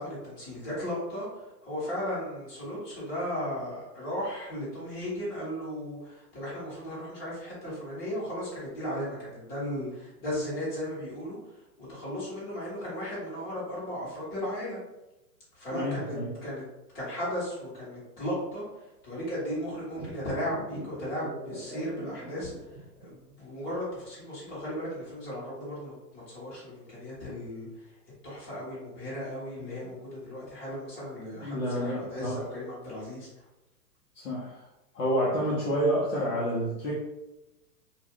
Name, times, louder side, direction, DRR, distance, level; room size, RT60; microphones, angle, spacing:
voice 1, 0.0-14.8 15.5-16.6 16.9-27.9 28.2-33.5, equal, 20° left, -8 dB, 1.2 m, -36 dB
voice 2, 15.7-16.3 31.4-32.4 34.1-34.6 34.9-37.0, equal, 50° left, -5 dB, 0.8 m, -29 dB
sound 1, 19.9-23.3 23.5-23.6, right 1 dB, 5° right, 0.8 m, -42 dB
2.4 x 2.2 x 3.6 m, 0.97 s
hypercardioid pair, 150°, 50 cm